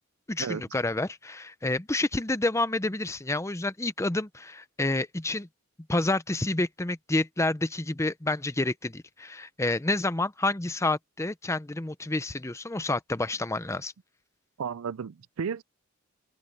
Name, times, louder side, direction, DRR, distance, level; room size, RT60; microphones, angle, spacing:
voice 1, 0.3-5.5 5.9-13.9, left 2 dB, 15° left, 0.7 m, -29 dB
voice 2, 14.6-15.6, right 6 dB, 80° right, 0.5 m, -33 dB
head